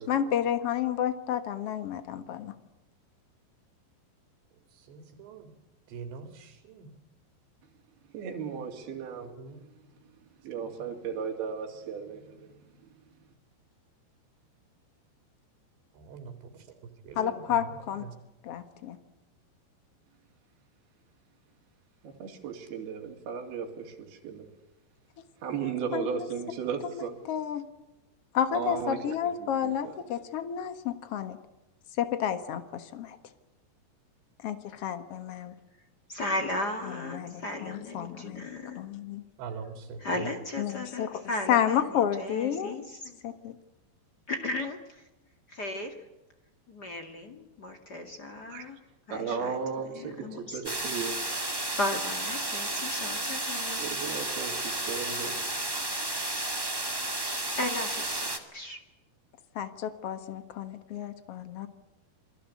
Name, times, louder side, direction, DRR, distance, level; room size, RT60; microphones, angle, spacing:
voice 1, 0.1-2.5 17.1-18.0 18.4-19.0 25.6-26.3 26.8-27.6 28.3-31.4 32.0-33.2 34.4-35.5 36.8-39.2 40.6-41.2 41.5-42.7 43.2-43.6 59.5-61.7, left 9 dB, 70° left, 10 dB, 1.4 m, -31 dB
voice 2, 4.7-5.5 5.9-6.9 9.2-9.6 15.9-16.8 17.0-17.7 18.0-18.1 39.4-40.3, right 5 dB, 85° right, 6 dB, 4.5 m, -43 dB
voice 3, 8.1-9.3 10.4-12.9 22.0-24.5 25.4-27.2 28.5-29.2 29.6-29.9 48.5-48.6 49.1-51.2 53.8-55.4, right 6 dB, 65° right, 2 dB, 4.7 m, -35 dB
voice 4, 36.1-38.8 40.0-41.8 42.2-43.2 44.3-45.0 45.5-45.9 46.7-48.8 49.1-49.5 49.9-50.8 51.8-53.8 57.6-58.8, left 1 dB, 35° left, 5 dB, 1.6 m, -35 dB
sound 1, 50.6-58.4, right 1 dB, 20° right, 0.6 m, -32 dB
28.5 x 21.5 x 8.3 m, 1.0 s
omnidirectional pair, 4.9 m